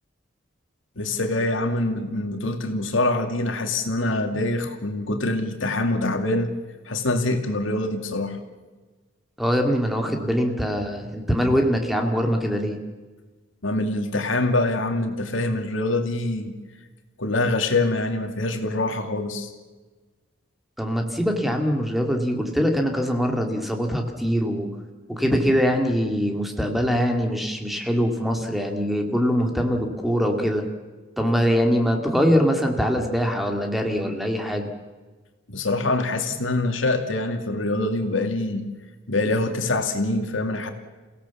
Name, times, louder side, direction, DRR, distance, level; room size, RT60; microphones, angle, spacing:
voice 1, 1.0-6.5 6.9-8.4 13.6-16.6 17.2-19.5 35.5-38.7 39.1-40.7, left 2 dB, 75° left, 5 dB, 2.3 m, -24 dB
voice 2, 9.4-12.8 20.8-24.7 25.1-30.7 31.2-34.7, equal, ahead, 3 dB, 2.3 m, -23 dB
29.0 x 17.0 x 7.2 m, 1.3 s
head